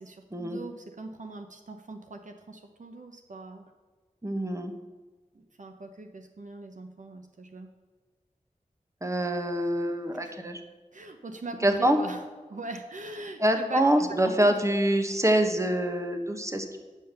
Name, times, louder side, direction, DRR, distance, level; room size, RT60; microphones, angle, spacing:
voice 1, 0.0-3.7 5.3-7.7 10.2-10.3 10.9-12.2 12.5-14.6, right 3 dB, 65° right, 5 dB, 0.8 m, -41 dB
voice 2, 4.2-4.7 9.0-10.6 11.6-12.0 13.4-16.8, right 1 dB, 20° right, 5 dB, 1.2 m, -25 dB
8.4 x 5.7 x 6.7 m, 1.4 s
cardioid pair, 45°, 14 cm